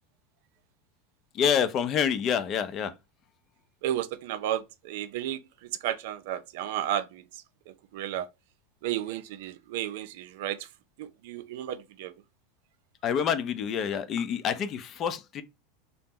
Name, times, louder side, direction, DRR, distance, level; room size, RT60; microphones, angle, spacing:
voice 1, 1.3-2.9 13.0-15.4, left 8 dB, 40° left, 0.5 m, -27 dB
voice 2, 3.8-8.3 8.8-10.7 11.0-12.1, right 12 dB, 70° right, 0.4 m, -33 dB
2.8 x 2.1 x 3.6 m
supercardioid pair, 115°, 0 cm